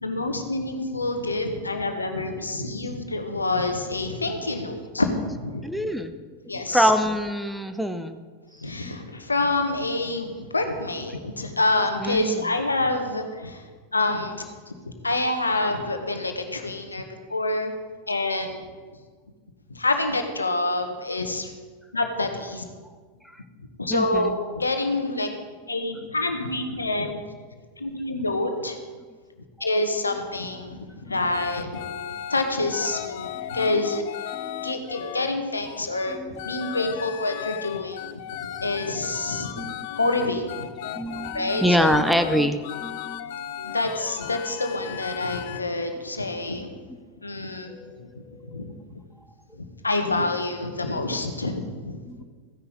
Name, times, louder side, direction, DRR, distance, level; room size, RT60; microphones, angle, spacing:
voice 1, 0.0-5.6 6.5-6.9 8.6-13.6 13.9-14.4 15.0-17.7 18.1-18.6 19.7-21.5 21.9-22.6 23.8-25.3 25.7-27.2 27.8-28.8 29.6-31.8 32.3-34.0 34.6-36.2 36.4-38.2 38.6-39.7 40.0-40.7 41.3-42.0 43.6-46.7 47.2-47.7 48.0-48.1 48.5-48.7 49.6-52.2, left 2 dB, 80° left, 6 dB, 1.2 m, -27 dB
voice 2, 5.6-6.1 6.5-8.2 12.0-12.4 23.9-24.4 33.4-33.5 34.3-34.9 36.1-36.4 39.6-39.7 40.0-40.4 41.0-43.2 47.7-48.7 52.1-52.2, equal, ahead, 8 dB, 0.7 m, -26 dB
sound 1, 31.3-35.3 35.6-45.6, left 11 dB, 50° left, 0.5 m, -36 dB
14.5 x 9.9 x 4.0 m, 1.5 s
figure-of-eight pair, 90°, 0 cm